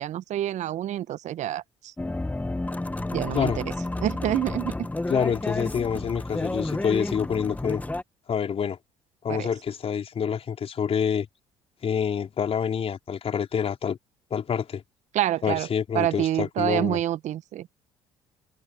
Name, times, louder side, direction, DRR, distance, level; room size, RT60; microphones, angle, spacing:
voice 1, 0.0-1.9 3.1-3.7 4.0-4.7 9.3-9.5 15.1-15.7 15.9-17.7, right 12 dB, 55° right, 1.5 m, -27 dB
sound 1, 2.0-8.0, left 2 dB, 10° left, 1.4 m, -31 dB
voice 2, 5.1-7.8 8.3-8.8 9.2-11.3 11.8-14.0 14.3-14.8 15.4-17.0, left 7 dB, 45° left, 4.3 m, -27 dB
hypercardioid pair, 55°, 14 cm